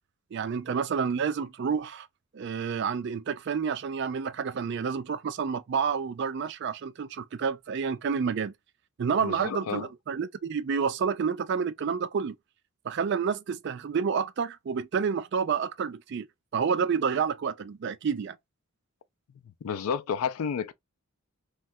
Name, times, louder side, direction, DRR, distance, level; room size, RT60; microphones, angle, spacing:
voice 1, 0.3-2.1 2.3-8.5 9.0-12.4 12.8-16.3 16.5-18.4, right 6 dB, 50° right, 0.3 m, -29 dB
voice 2, 9.2-9.9 19.6-20.7, left 7 dB, 80° left, 0.4 m, -31 dB
3.2 x 2.3 x 2.6 m
head